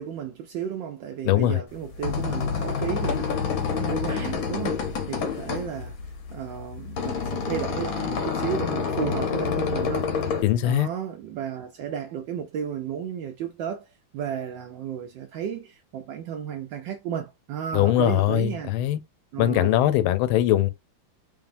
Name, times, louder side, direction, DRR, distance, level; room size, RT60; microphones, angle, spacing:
voice 1, 0.0-6.0 6.3-10.1 10.6-18.7 19.3-19.8, right 8 dB, 75° right, 1.2 m, -33 dB
voice 2, 1.2-1.6 10.4-10.9 17.7-19.0 19.4-20.7, left 13 dB, 80° left, 1.3 m, -21 dB
sound 1, 1.7-10.4, left 6 dB, 60° left, 1.0 m, -28 dB
5.0 x 2.7 x 2.5 m
omnidirectional pair, 2.3 m